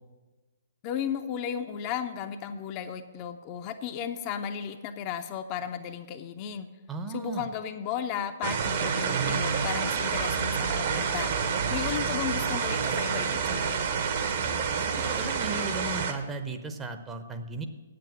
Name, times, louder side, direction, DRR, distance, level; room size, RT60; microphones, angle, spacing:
voice 1, 0.8-6.7 7.1-11.3 11.7-13.9, left 8 dB, 30° left, 6 dB, 0.5 m, -34 dB
voice 2, 6.9-7.5 14.8-17.7, right 3 dB, 15° right, 6 dB, 0.7 m, -36 dB
sound 1, 8.4-16.1, right 6 dB, 45° right, 1.0 m, -28 dB
9.0 x 7.7 x 7.2 m, 1.2 s
figure-of-eight pair, 120°, 0 cm